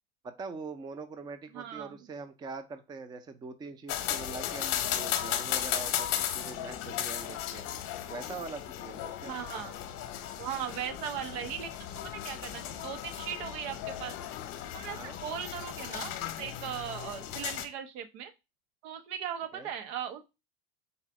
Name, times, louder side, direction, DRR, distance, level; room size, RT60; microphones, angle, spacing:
voice 1, 0.2-7.7 8.1-9.3 14.9-15.2 19.5-19.7, right 4 dB, 15° right, 9 dB, 0.4 m, -43 dB
voice 2, 1.5-2.0 9.3-9.8 10.4-11.7 12.2-14.1 14.7-18.3 18.8-20.3, right 9 dB, 85° right, 8 dB, 0.9 m, -38 dB
sound 1, 3.9-17.7, left 11 dB, 50° left, 0.8 m, -36 dB
4.1 x 2.5 x 4.7 m, 0.25 s
supercardioid pair, 140°, 30 cm